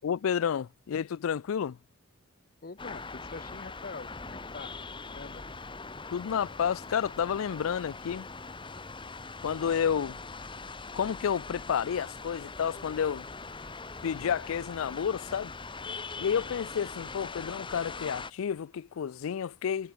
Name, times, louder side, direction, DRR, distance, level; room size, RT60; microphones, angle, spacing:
voice 1, 0.0-1.8 6.1-8.3 9.4-10.2 10.9-13.2 14.0-15.5 16.2-19.9, left 7 dB, 80° left, 0.4 m, -30 dB
voice 2, 2.6-4.7 5.1-5.5 14.6-14.7, left 4 dB, 45° left, 0.9 m, -44 dB
sound 1, 2.8-18.3, left 4 dB, 25° left, 1.6 m, -42 dB
head